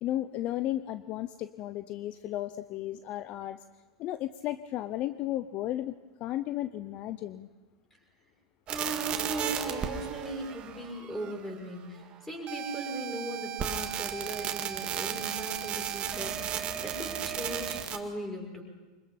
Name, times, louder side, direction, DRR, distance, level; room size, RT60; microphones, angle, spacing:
voice 1, 0.0-3.6 4.0-5.9 6.2-7.5, left 13 dB, 45° left, 13 dB, 0.7 m, -34 dB
voice 2, 8.7-18.6, right 1 dB, 10° left, 1 dB, 6.2 m, -38 dB
sound 1, 8.7-11.6 12.5-18.0, right 10 dB, 35° right, 2.0 m, -34 dB
24.5 x 21.0 x 5.8 m, 1.3 s
hypercardioid pair, 110°, 3 cm